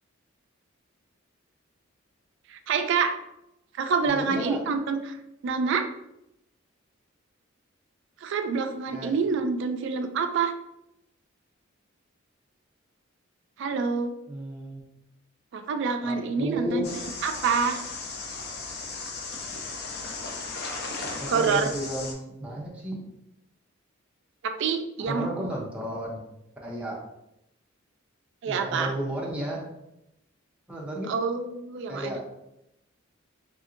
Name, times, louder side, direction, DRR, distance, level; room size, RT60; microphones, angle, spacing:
voice 1, 2.5-3.1 3.8-5.2 5.4-5.9 8.2-10.5 13.6-14.1 15.5-16.8 17.2-17.8 21.3-21.7 24.4-25.3 28.4-28.9 31.1-32.3, right 5 dB, 60° right, 7 dB, 0.3 m, -27 dB
voice 2, 4.1-4.6 8.9-9.1 14.3-14.8 16.0-16.9 21.2-23.0 25.1-26.2 26.6-27.0 28.5-29.7 30.7-31.2 31.9-32.3, equal, 5° right, -4 dB, 0.5 m, -33 dB
sound 1, 16.8-22.1, left 3 dB, 55° left, 0.5 m, -36 dB
2.7 x 2.6 x 2.5 m, 0.85 s
head